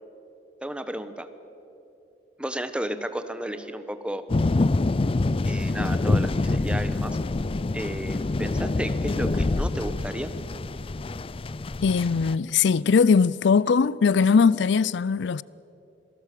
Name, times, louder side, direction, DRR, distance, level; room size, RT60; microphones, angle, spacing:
voice 1, 0.6-1.3 2.4-4.2 5.4-7.2 7.7-10.3, right 1 dB, 5° right, 1.1 m, -32 dB
sound 1, 4.3-12.4, left 2 dB, 30° left, 0.4 m, -26 dB
voice 2, 11.8-15.4, left 5 dB, 90° left, 0.5 m, -20 dB
26.0 x 18.5 x 8.4 m
head